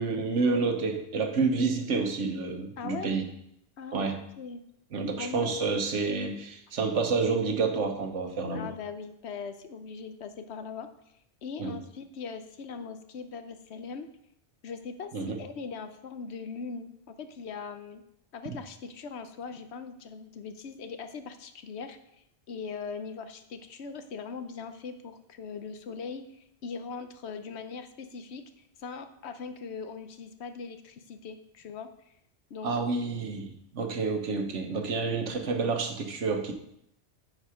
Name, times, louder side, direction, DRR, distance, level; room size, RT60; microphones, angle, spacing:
voice 1, 0.0-3.3 3.9-4.2 4.9-8.7 11.6-11.8 15.1-15.4 32.6-36.5, right 4 dB, 90° right, 5 dB, 1.4 m, -29 dB
voice 2, 2.8-3.1 3.8-4.1 4.4-4.6 5.2-5.6 8.5-10.9 11.4-14.1 14.6-18.0 18.3-22.0 22.5-28.4 28.8-32.1 32.5-32.7, left 5 dB, 70° left, 9 dB, 1.0 m, -40 dB
10.0 x 4.8 x 4.9 m, 0.77 s
omnidirectional pair, 1.2 m